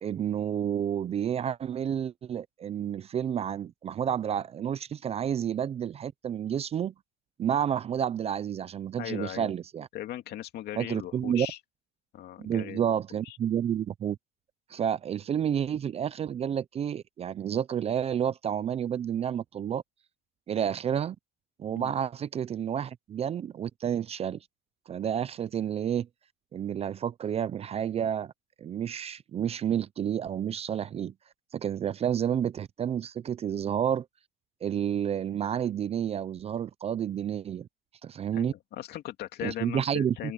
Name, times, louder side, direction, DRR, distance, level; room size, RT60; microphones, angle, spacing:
voice 1, 0.0-6.9 7.4-9.9 10.8-11.5 12.4-14.2 14.7-19.8 20.5-21.2 21.6-24.4 24.9-26.1 26.5-28.3 28.6-31.1 31.5-34.1 34.6-37.7 38.0-38.5 39.4-40.3, right 9 dB, 30° right, 0.6 m, -30 dB
voice 2, 9.0-9.5 9.9-11.6 12.1-13.4 21.7-21.9 38.3-40.3, left 13 dB, 55° left, 2.5 m, -39 dB
cardioid pair, 125°, 20 cm